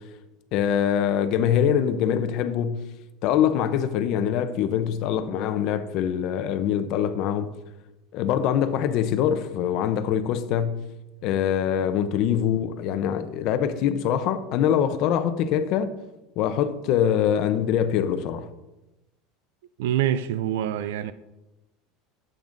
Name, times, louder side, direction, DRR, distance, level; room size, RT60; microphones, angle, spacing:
voice 1, 0.5-2.9 3.2-7.5 8.1-10.8 11.2-15.9 16.4-18.5, left 9 dB, 50° left, 0.6 m, -24 dB
voice 2, 19.8-21.1, right 10 dB, 85° right, 0.3 m, -25 dB
10.5 x 7.9 x 2.6 m
supercardioid pair, 155°, 0 cm